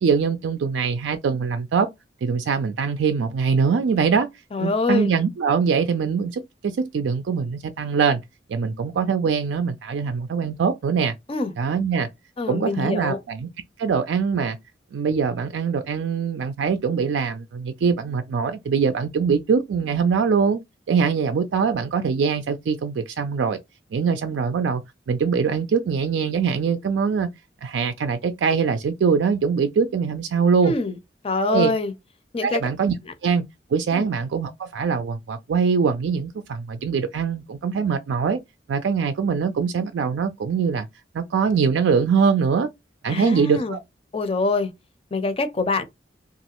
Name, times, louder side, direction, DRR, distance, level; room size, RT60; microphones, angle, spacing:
voice 1, 0.0-1.9 2.2-4.3 4.6-8.2 8.5-11.2 11.6-12.1 12.5-13.5 13.8-14.6 14.9-20.6 20.9-23.6 23.9-24.8 25.1-27.3 27.6-30.7 31.4-31.7 32.4-32.9 33.2-33.4 33.7-38.4 38.7-40.9 41.1-42.7 43.0-43.8, right 6 dB, 80° right, 0.4 m, -23 dB
voice 2, 4.5-5.1 11.3-11.5 12.4-13.2 30.6-31.0 31.2-31.9 32.3-32.6 33.1-33.2 33.9-34.1 43.1-43.8 44.1-44.7 45.1-45.8, left 3 dB, 35° left, 0.5 m, -25 dB
3.0 x 2.4 x 2.9 m
head